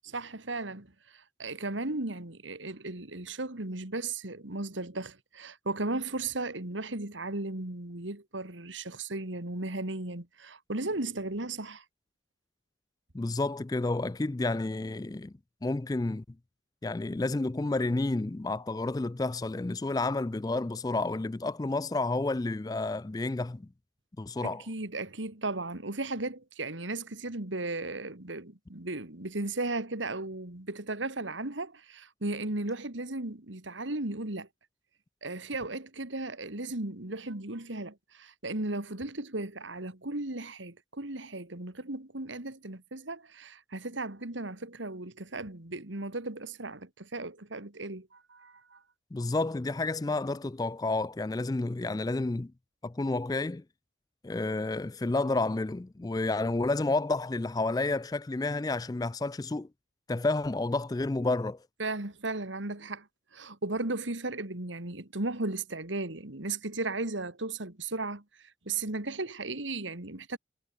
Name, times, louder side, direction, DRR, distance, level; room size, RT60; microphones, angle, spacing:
voice 1, 0.1-11.8 24.4-34.5 35.2-48.8 61.8-70.4, right 2 dB, 90° right, 2.6 m, -36 dB
voice 2, 13.1-15.3 15.6-16.2 16.8-23.7 24.2-24.6 49.1-52.5 52.8-53.6 54.2-59.7 60.1-61.6, left 2 dB, 20° left, 0.3 m, -30 dB
head